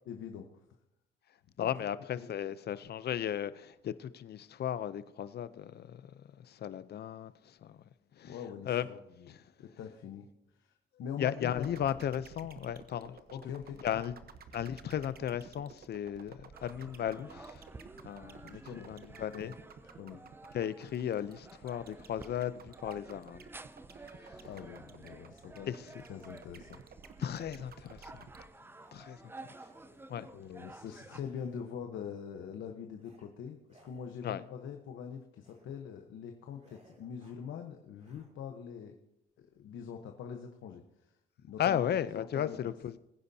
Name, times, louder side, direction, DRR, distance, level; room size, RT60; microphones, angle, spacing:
voice 1, 0.1-0.6 1.6-2.3 8.2-10.3 10.5-10.7 11.0-11.7 13.1-14.0 18.4-19.5 19.9-20.2 24.4-25.7 26.1-26.8 30.3-39.0 39.4-41.1 41.4-42.6, left 7 dB, 75° left, 1.1 m, -44 dB
voice 2, 1.6-7.8 8.2-8.3 8.6-8.9 9.3-9.4 11.2-13.2 13.8-14.1 14.5-17.7 18.0-18.6 18.9-19.5 20.5-23.4 24.2-24.5 25.7-26.0 27.2-28.3 28.9-29.3 30.1-30.2 34.2-34.4 41.6-43.0, left 10 dB, 55° left, 0.6 m, -35 dB
sound 1, 11.5-28.5, right 6 dB, 50° right, 1.0 m, -53 dB
sound 2, 16.5-31.2, right 2 dB, 10° right, 0.5 m, -53 dB
sound 3, 28.8-29.1 29.4-30.3 31.1-32.1 32.9-33.3 33.6-34.5 35.3-35.7 36.0-36.2 36.6-37.5 37.9-38.3, right 2 dB, 35° right, 2.6 m, -65 dB
20.5 x 10.0 x 2.8 m
cardioid pair, 90°, 20 cm